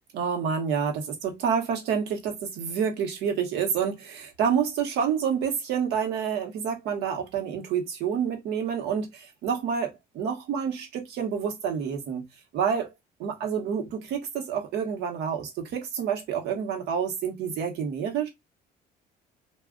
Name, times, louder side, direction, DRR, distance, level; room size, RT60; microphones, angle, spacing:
voice 1, 0.1-12.2 12.5-12.9 13.2-18.3, right 7 dB, 80° right, 1.0 m, -28 dB
2.3 x 2.3 x 3.6 m
cardioid pair, 110°, 17 cm